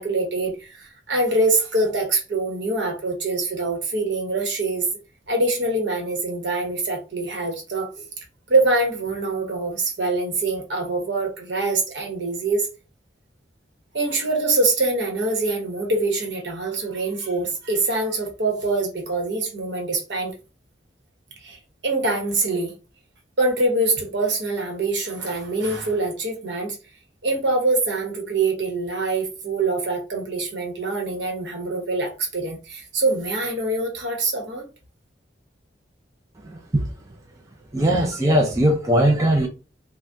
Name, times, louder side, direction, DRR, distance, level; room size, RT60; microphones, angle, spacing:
voice 1, 0.0-4.9 5.3-8.1 8.5-12.7 13.9-20.3 21.4-22.8 23.4-26.8 27.2-34.7, right 2 dB, 70° right, 1.0 m, -24 dB
voice 2, 37.7-39.5, right 1 dB, 15° right, 0.4 m, -19 dB
2.6 x 2.2 x 3.4 m
head